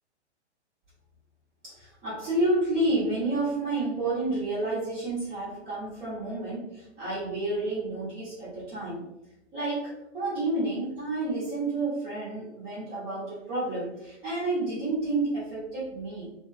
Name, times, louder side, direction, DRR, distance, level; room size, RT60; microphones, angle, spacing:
voice 1, 1.6-9.1 9.5-16.3, right 2 dB, 15° right, -10 dB, 0.7 m, -30 dB
2.9 x 2.1 x 2.5 m, 0.89 s
hypercardioid pair, 130°, 35 cm